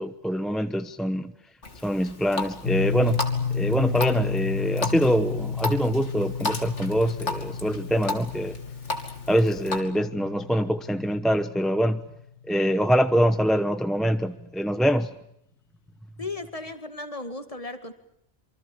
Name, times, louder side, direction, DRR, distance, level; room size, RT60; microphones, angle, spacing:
voice 1, 0.0-1.3 1.8-3.2 3.5-8.5 9.3-12.1 12.5-15.1, equal, ahead, 0.9 m, -24 dB
Water tap faucet, 1.6-9.8, left 3 dB, 80° left, 3.1 m, -35 dB
sound 1, 2.6-12.6, left 6 dB, 55° left, 1.8 m, -31 dB
voice 2, 16.2-17.9, left 2 dB, 30° left, 2.2 m, -35 dB
27.5 x 24.5 x 7.2 m
omnidirectional pair, 1.2 m